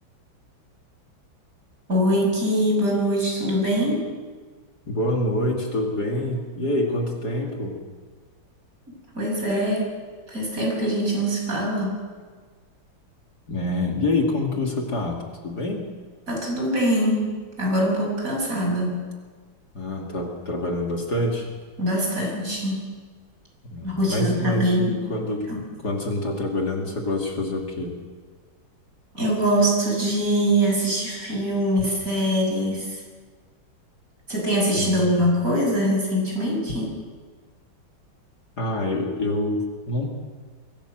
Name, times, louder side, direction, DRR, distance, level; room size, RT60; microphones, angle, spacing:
voice 1, 1.9-4.1 9.1-9.9 10.3-12.0 16.3-19.0 21.8-22.9 23.8-24.8 25.5-25.6 29.1-33.0 34.3-36.9, equal, 40° right, -1 dB, 7.0 m, -23 dB
voice 2, 4.9-7.8 13.5-15.2 15.4-15.8 19.7-21.5 23.7-25.5 25.8-28.0 34.7-35.1 38.6-40.1, left 1 dB, 50° left, 0 dB, 3.1 m, -26 dB
24.0 x 17.0 x 7.8 m, 1.5 s
omnidirectional pair, 2.2 m